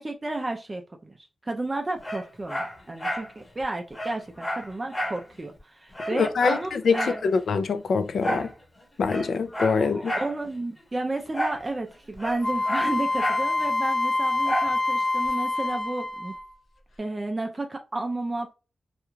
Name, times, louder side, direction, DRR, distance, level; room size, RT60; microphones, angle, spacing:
voice 1, 0.0-7.2 9.8-16.3 17.0-18.5, right 2 dB, 25° right, 0.4 m, -32 dB
Dog, 2.0-3.3 3.6-3.7 3.9-5.2 5.6-5.7 5.9-7.2 8.2-8.5 9.0-10.3 11.3-11.7 11.9-13.5 14.4-14.8 15.3-15.4, equal, 20° left, 0.9 m, -31 dB
voice 2, 6.1-7.0 7.2-8.5 9.0-10.1, left 5 dB, 75° left, 0.3 m, -24 dB
Wind instrument woodwind instrument, 12.4-16.6, left 2 dB, 55° left, 1.0 m, -26 dB
2.4 x 2.2 x 3.0 m
wide cardioid pair, 110°, 0 cm